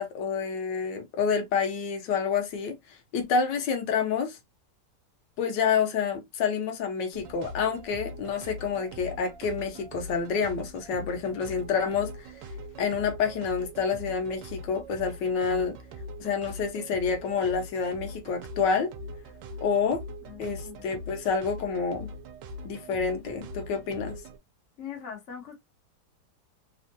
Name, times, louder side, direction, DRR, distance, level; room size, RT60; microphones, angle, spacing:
voice 1, 0.0-4.4 5.4-12.3 12.8-15.8 16.2-18.9 19.6-20.0 20.4-22.1 22.6-24.2, left 6 dB, 90° left, 1.4 m, -28 dB
sound 1, 7.1-24.4, equal, 90° right, 1.3 m, -42 dB
voice 2, 20.2-20.9 24.8-25.6, left 8 dB, 50° left, 1.2 m, -41 dB
3.5 x 2.1 x 2.6 m
omnidirectional pair, 1.9 m